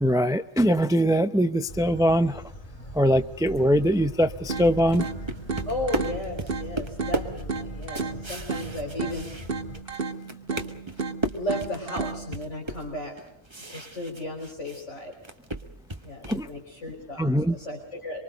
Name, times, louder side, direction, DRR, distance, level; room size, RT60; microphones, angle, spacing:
voice 1, 0.0-2.4 2.9-5.1 16.3-16.5 17.2-17.5, equal, 5° right, 12 dB, 0.5 m, -22 dB
sound 1, 1.7-9.8, equal, 30° left, 3.6 m, -40 dB
sound 2, 4.5-12.5, right 4 dB, 50° right, 1.8 m, -34 dB
sound 3, 4.6-9.9 10.2-14.8 15.1-16.5, right 1 dB, 20° right, 1.5 m, -35 dB
voice 2, 5.6-9.3 10.5-10.7 11.3-13.3 13.7-15.1 16.0-18.2, left 1 dB, 70° left, -1 dB, 4.6 m, -35 dB
26.0 x 24.5 x 5.2 m, 0.77 s
omnidirectional pair, 1.3 m